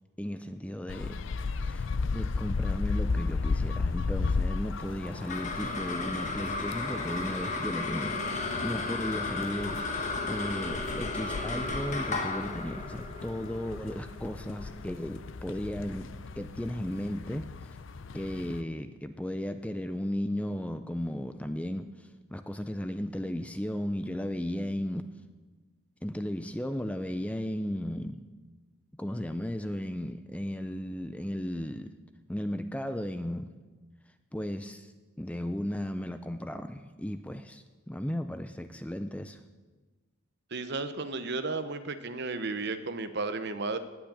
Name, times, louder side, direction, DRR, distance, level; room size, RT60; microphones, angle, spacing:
voice 1, 0.2-17.8 18.1-25.1 26.0-28.2 28.9-31.9 32.3-33.5 34.3-34.9 35.2-39.4, equal, 5° left, 9 dB, 0.4 m, -35 dB
sound 1, 0.9-18.6, left 4 dB, 60° left, 0.5 m, -35 dB
sound 2, 5.0-15.6, left 3 dB, 35° left, 1.6 m, -35 dB
voice 2, 40.5-43.8, right 3 dB, 50° right, 10 dB, 0.9 m, -33 dB
18.5 x 6.1 x 8.6 m, 1.3 s
head